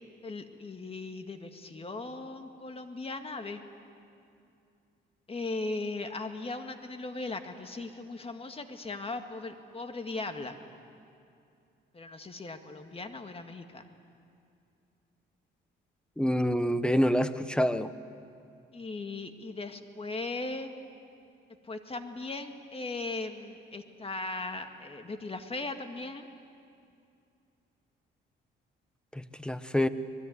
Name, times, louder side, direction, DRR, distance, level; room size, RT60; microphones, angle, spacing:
voice 1, 0.2-3.6 5.3-10.6 11.9-13.9 18.7-20.7 21.7-26.3, left 3 dB, 30° left, 7 dB, 1.9 m, -38 dB
voice 2, 16.2-17.9 29.1-29.9, equal, 5° left, 12 dB, 1.1 m, -27 dB
25.5 x 20.5 x 9.5 m, 2.5 s
cardioid pair, 90°, 20 cm